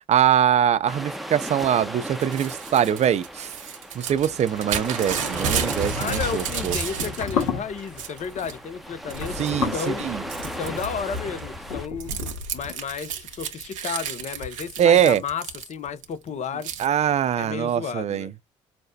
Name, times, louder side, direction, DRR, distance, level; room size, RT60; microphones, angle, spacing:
voice 1, 0.1-3.5 3.9-6.8 9.4-10.2 14.8-15.2 16.8-18.3, right 9 dB, 45° right, 0.5 m, -22 dB
sound 1, 0.9-11.9, right 1 dB, ahead, 0.7 m, -36 dB
Crumpling crinkling / Tearing, 2.2-7.4 7.8-8.6 9.1-9.5 9.8-16.0 16.6-16.9, right 6 dB, 85° right, 0.7 m, -32 dB
sound 2, 6.0-12.7, left 6 dB, 80° left, 1.5 m, -33 dB
voice 2, 6.0-10.0 10.4-12.1 12.5-16.7 17.4-18.3, left 6 dB, 45° left, 0.7 m, -32 dB
5.1 x 2.1 x 2.6 m
hypercardioid pair, 50°, 16 cm